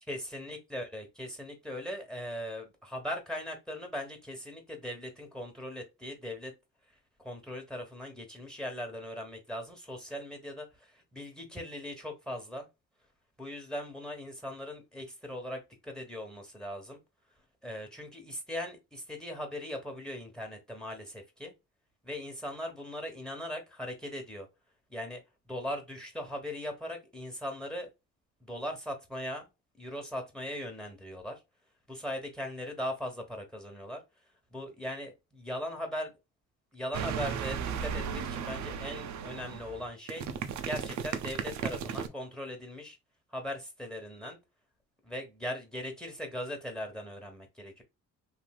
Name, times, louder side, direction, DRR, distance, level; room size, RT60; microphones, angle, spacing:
voice 1, 0.1-6.5 7.2-12.7 13.4-17.0 17.6-21.5 22.0-24.5 24.9-25.2 25.5-27.9 28.4-29.4 29.8-31.4 31.9-34.0 34.5-36.1 36.7-40.3 40.6-43.0 43.3-44.4 45.0-47.8, equal, 5° left, 1.1 m, -39 dB
sound 1, 36.9-42.1, right 7 dB, 70° right, 0.6 m, -35 dB
3.3 x 2.7 x 2.3 m
cardioid pair, 90°, 30 cm